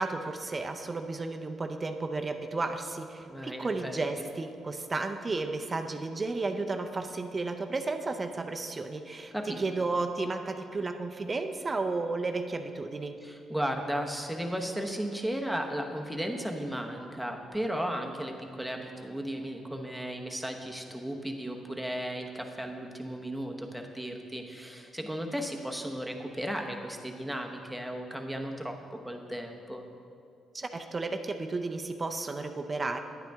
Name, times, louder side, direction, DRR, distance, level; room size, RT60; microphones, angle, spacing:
voice 1, 0.0-13.2 30.5-33.0, right 3 dB, 30° right, 6 dB, 0.6 m, -33 dB
voice 2, 3.2-4.0 9.3-9.6 13.2-29.8, equal, ahead, 2 dB, 1.0 m, -35 dB
10.5 x 9.0 x 3.5 m, 2.5 s
cardioid pair, 90°, 0 cm